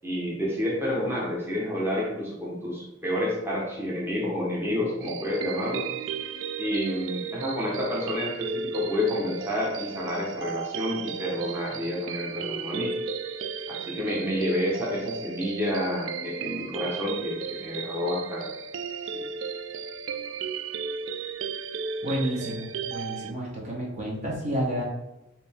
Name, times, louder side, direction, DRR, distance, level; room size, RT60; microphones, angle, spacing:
voice 1, 0.0-5.9 6.6-12.9 13.7-18.5 19.1-19.2, left 1 dB, 10° right, -5 dB, 0.9 m, -29 dB
sound 1, 5.0-23.3, right 6 dB, 80° right, 0.3 m, -35 dB
voice 2, 22.0-24.8, equal, 40° right, -3 dB, 1.0 m, -30 dB
4.9 x 2.7 x 3.5 m, 0.95 s
head